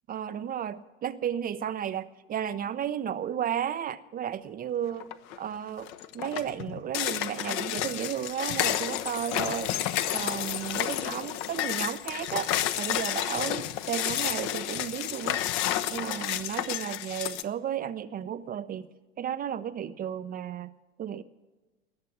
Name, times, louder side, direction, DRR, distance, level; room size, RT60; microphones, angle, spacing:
voice 1, 0.1-5.1 5.4-5.9 6.1-9.7 10.1-12.5 12.8-15.4 15.9-18.9 19.2-20.7 21.0-21.2, right 9 dB, 25° right, 13 dB, 0.6 m, -33 dB
sound 1, 5.0-5.4 5.8-17.4, left 12 dB, 50° left, 0.9 m, -31 dB
19.5 x 6.7 x 9.9 m, 1.2 s
hypercardioid pair, 90°, 33 cm